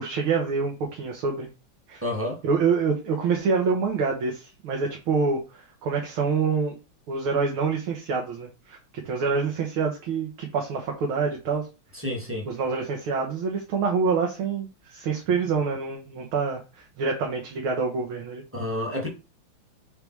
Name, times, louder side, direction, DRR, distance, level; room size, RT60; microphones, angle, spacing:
voice 1, 0.0-1.5 1.9-2.0 2.4-6.8 7.1-8.8 9.1-11.7 12.5-16.6 17.0-18.4, right 5 dB, 75° right, 2.0 m, -26 dB
voice 2, 2.0-2.4 11.9-12.5 18.5-19.1, left 1 dB, 5° right, 1.4 m, -29 dB
5.7 x 3.6 x 4.6 m
omnidirectional pair, 2.4 m